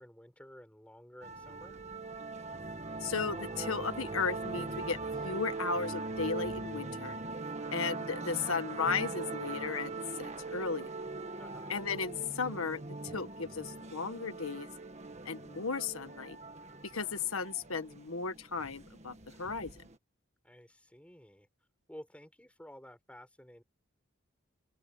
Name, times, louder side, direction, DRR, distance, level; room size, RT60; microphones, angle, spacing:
voice 1, 0.0-1.8 11.4-11.7 20.4-21.5 21.9-23.6, equal, 5° left, 5.3 m, -52 dB
sound 1, 1.2-20.0, right 3 dB, 35° right, 1.6 m, -41 dB
voice 2, 3.0-7.2 7.7-10.9 11.7-14.7 15.2-16.4 16.9-19.8, left 5 dB, 90° left, 1.5 m, -35 dB
head